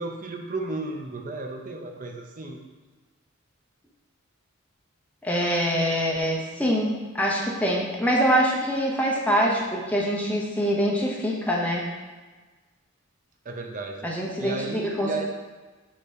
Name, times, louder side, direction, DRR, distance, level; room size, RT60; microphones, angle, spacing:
voice 1, 0.0-2.6 13.4-14.1 14.4-15.2, right 2 dB, 40° right, 2 dB, 0.6 m, -33 dB
voice 2, 5.2-11.8 14.0-15.2, equal, 5° left, -2 dB, 0.7 m, -24 dB
6.4 x 2.9 x 5.1 m, 1.3 s
head